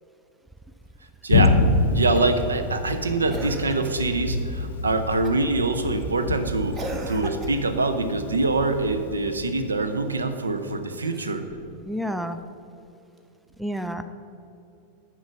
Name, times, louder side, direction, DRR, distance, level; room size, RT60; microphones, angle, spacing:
voice 1, 1.2-1.6 1.9-11.4, right 3 dB, 75° right, 9 dB, 0.6 m, -25 dB
Thunder, 1.3-10.7, left 3 dB, 60° left, 0.6 m, -27 dB
Cough, 2.1-2.5 3.3-4.1 5.2-5.6 6.7-7.8 10.9-11.7 13.2-13.3, right 2 dB, 25° right, 0.8 m, -38 dB
voice 2, 11.9-12.4 13.6-14.0, equal, 5° right, 9 dB, 0.4 m, -29 dB
10.5 x 4.5 x 6.0 m, 2.8 s
figure-of-eight pair, 90°, 0 cm